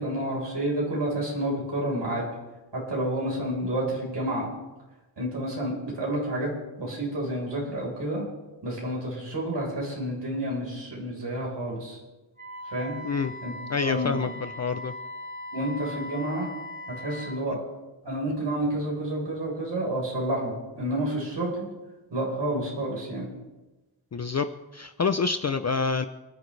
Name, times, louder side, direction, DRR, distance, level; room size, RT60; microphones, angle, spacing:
voice 1, 0.0-2.3 2.7-4.5 5.2-6.5 6.8-8.3 8.6-12.0 12.7-13.0 13.4-13.5 13.8-14.3 15.5-16.5 16.9-17.6 18.0-21.7 22.1-23.3, right 1 dB, 60° right, -2 dB, 4.5 m, -29 dB
Wind instrument woodwind instrument, 12.4-17.4, left 1 dB, 35° right, 4.8 m, -39 dB
voice 2, 13.7-14.9 24.1-24.5 24.7-26.1, left 5 dB, 35° left, 9 dB, 0.5 m, -27 dB
28.0 x 11.0 x 3.3 m, 1.1 s
wide cardioid pair, 150°, 48 cm